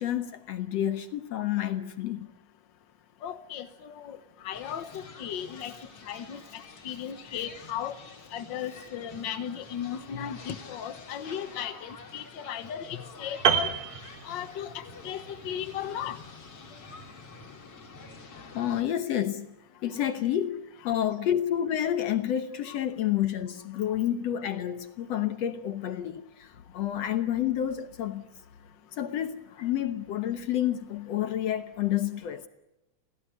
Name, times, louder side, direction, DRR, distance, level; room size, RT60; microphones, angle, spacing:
voice 1, 0.0-2.3 16.7-16.8 18.5-19.5 19.8-28.3 29.0-32.4, left 11 dB, 65° left, 1.8 m, -29 dB
voice 2, 3.2-4.2 4.4-5.7 6.0-8.0 8.3-13.7 14.2-16.2 20.9-21.0 22.7-22.8, left 9 dB, 80° left, 1.0 m, -36 dB
sound 1, 4.5-18.8, left 4 dB, 45° left, 3.9 m, -48 dB
Piano, 13.5-14.9 15.2-15.4, right 8 dB, 55° right, 2.2 m, -27 dB
28.0 x 18.0 x 9.7 m
omnidirectional pair, 3.8 m